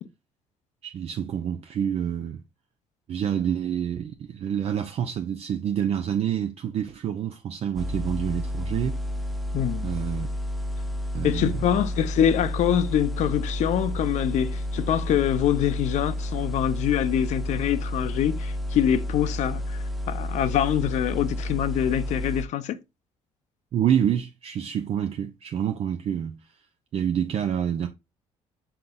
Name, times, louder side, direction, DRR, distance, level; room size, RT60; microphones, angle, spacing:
voice 1, 0.8-2.4 3.1-9.0 9.8-10.3 11.1-11.6 23.7-26.4 26.9-27.9, right 9 dB, 50° right, 0.5 m, -27 dB
sound 1, 7.8-22.5, left 1 dB, ahead, 0.6 m, -31 dB
voice 2, 9.5-9.9 11.2-22.8, left 10 dB, 65° left, 0.5 m, -25 dB
5.6 x 3.9 x 2.3 m
cardioid pair, 90°, 13 cm